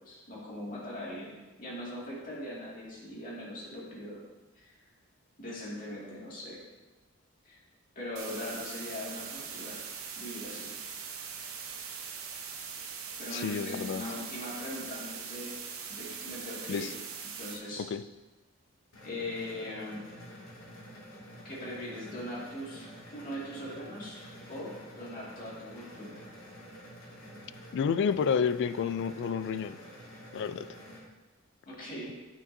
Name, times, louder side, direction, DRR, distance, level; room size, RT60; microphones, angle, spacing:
voice 1, 0.0-1.3 1.6-4.2 4.6-4.8 5.4-6.6 7.4-7.6 8.0-9.9 10.2-10.7 13.2-16.9 17.4-17.8 19.0-20.1 21.4-24.2 24.5-26.2 31.6-32.2, left 1 dB, 40° left, -6 dB, 2.1 m, -40 dB
sound 1, 8.2-17.6, right 6 dB, 75° right, 0.9 m, -41 dB
voice 2, 13.3-14.0 16.7-16.9 17.8-18.0 27.7-29.8 30.3-30.7, left 6 dB, 60° left, 13 dB, 0.3 m, -30 dB
sound 2, 18.9-31.0, equal, 85° left, 1.8 m, -49 dB
9.5 x 5.9 x 2.7 m, 1.2 s
head